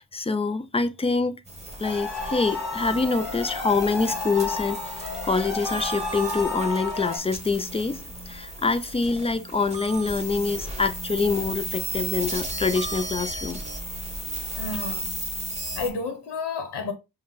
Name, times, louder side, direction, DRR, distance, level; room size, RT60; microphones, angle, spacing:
voice 1, 0.0-1.4 1.8-13.6, left 4 dB, 15° left, 0.3 m, -26 dB
sound 1, 1.5-15.9, right 1 dB, 15° right, 1.1 m, -34 dB
sound 2, 1.8-7.2, left 4 dB, ahead, 2.9 m, -32 dB
voice 2, 14.5-15.2 15.7-16.9, left 4 dB, 70° left, 0.9 m, -31 dB
5.5 x 2.1 x 3.4 m
wide cardioid pair, 115°, 41 cm